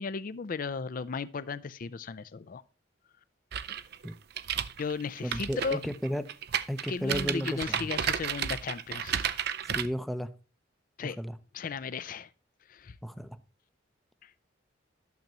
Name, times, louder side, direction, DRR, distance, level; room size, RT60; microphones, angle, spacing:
voice 1, 0.0-2.6 4.8-5.8 6.9-9.3 11.0-11.2 11.5-12.3 12.7-13.0 14.2-14.3, left 5 dB, 45° left, 0.4 m, -35 dB
sound 1, 3.5-9.9, right 9 dB, 55° right, 0.5 m, -32 dB
voice 2, 5.2-6.2 6.7-7.9 9.7-10.3 11.2-11.4 13.0-13.4, equal, ahead, 0.6 m, -33 dB
11.5 x 6.7 x 2.9 m
head